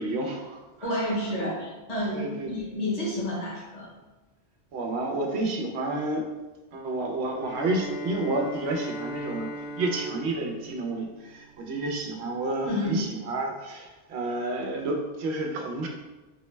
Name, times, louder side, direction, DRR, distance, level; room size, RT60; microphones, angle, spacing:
voice 1, 0.0-1.1 2.1-2.7 4.7-6.2 6.7-9.5 9.8-15.9, right 2 dB, 75° right, 2 dB, 0.9 m, -30 dB
voice 2, 0.8-3.9 12.6-13.1, left 1 dB, 40° left, -6 dB, 1.0 m, -30 dB
Bowed string instrument, 7.4-11.8, right 1 dB, 65° left, 1.2 m, -38 dB
3.9 x 2.1 x 3.1 m, 1.2 s
omnidirectional pair, 1.1 m